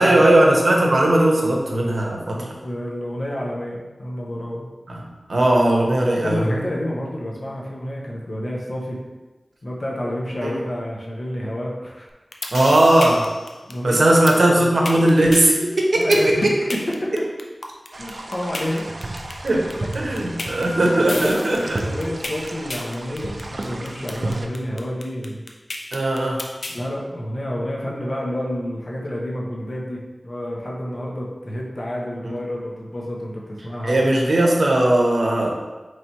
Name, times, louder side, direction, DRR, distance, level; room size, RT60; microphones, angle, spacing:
voice 1, 0.0-2.5 4.9-6.5 10.4-10.5 12.5-13.3 13.8-16.5 19.4-19.6 19.9-21.8 25.9-26.4 32.2-32.3 33.8-35.5, right 1 dB, 75° right, -1 dB, 0.7 m, -18 dB
voice 2, 2.3-4.6 6.2-9.0 9.6-12.1 13.7-14.7 16.0-17.1 18.0-19.0 20.0-20.7 21.0-25.4 26.7-34.2, equal, 55° left, -3 dB, 0.7 m, -29 dB
sound 1, 12.1-26.8, left 2 dB, 80° left, 0.4 m, -31 dB
sound 2, 17.9-24.5, right 2 dB, 60° right, 0.4 m, -32 dB
3.2 x 2.8 x 4.3 m, 1.2 s
wide cardioid pair, 70°, 0 cm